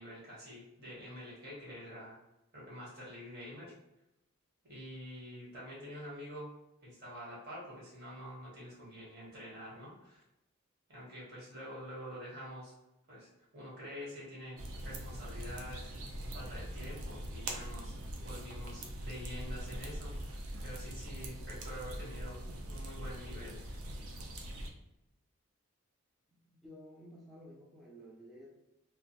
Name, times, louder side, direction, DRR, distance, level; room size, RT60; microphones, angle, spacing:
voice 1, 0.0-2.2 2.5-3.7 4.6-6.5 6.8-10.2 10.9-12.7 13.1-14.6 14.8-15.9 16.3-22.4 22.7-23.8, equal, 45° right, -6 dB, 1.1 m, -47 dB
sound 1, 14.6-24.7, right 1 dB, 75° right, 0.4 m, -42 dB
voice 2, 26.3-28.5, equal, ahead, -5 dB, 0.3 m, -53 dB
2.5 x 2.1 x 2.9 m, 0.91 s
head